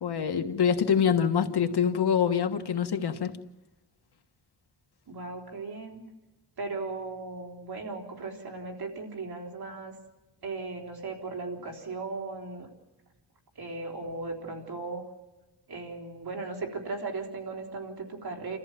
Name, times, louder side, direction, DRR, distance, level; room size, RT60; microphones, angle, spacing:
voice 1, 0.0-3.4, left 7 dB, 70° left, 1.5 m, -25 dB
voice 2, 5.1-6.0 6.6-10.0 10.4-12.7 13.6-15.1 15.7-18.6, right 3 dB, 65° right, 4.0 m, -37 dB
29.0 x 14.0 x 7.5 m
wide cardioid pair, 115°, 40 cm